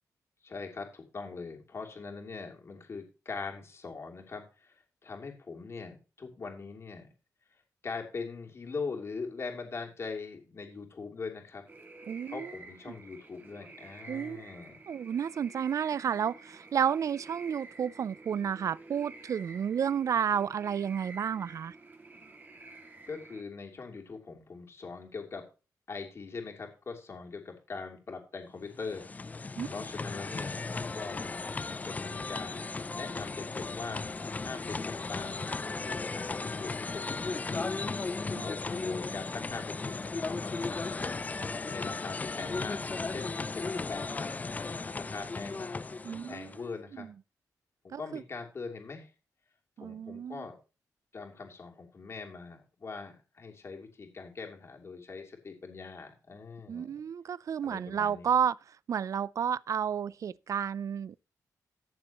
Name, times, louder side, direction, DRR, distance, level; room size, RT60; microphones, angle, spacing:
voice 1, 0.4-7.1 7.8-11.6 12.3-14.7 23.1-25.5 25.9-29.0 29.7-31.3 31.8-37.7 38.3-41.2 41.7-45.8 46.3-47.1 47.8-49.1 49.8-50.6 51.1-57.0 57.6-58.3, left 4 dB, 45° left, 3.0 m, -42 dB
sound 1, 11.7-23.4, right 2 dB, 30° right, 2.1 m, -50 dB
voice 2, 12.1-12.5 14.1-14.4 14.9-21.7 29.6-29.7 38.3-38.5 46.0-46.5 47.0-47.1 47.9-48.2 49.8-50.5 56.7-58.6 58.9-61.2, right 8 dB, 60° right, 0.4 m, -31 dB
sound 2, 28.6-46.7, left 3 dB, 25° left, 0.4 m, -36 dB
14.5 x 6.9 x 2.9 m
wide cardioid pair, 120°, 6 cm